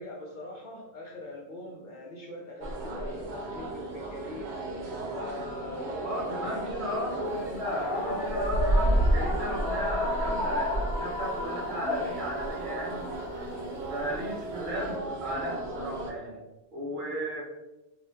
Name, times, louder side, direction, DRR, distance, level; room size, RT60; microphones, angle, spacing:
voice 1, 0.0-4.5 5.1-7.5, left 2 dB, 55° left, -2 dB, 0.7 m, -42 dB
sound 1, 2.6-16.1, right 1 dB, 80° right, 0.9 m, -32 dB
voice 2, 6.0-13.2 13.9-16.4 16.7-17.4, equal, 50° right, -4 dB, 1.0 m, -35 dB
sound 2, 7.2-14.9, left 1 dB, 5° right, 0.9 m, -34 dB
2.8 x 2.4 x 3.2 m, 1.0 s
omnidirectional pair, 1.1 m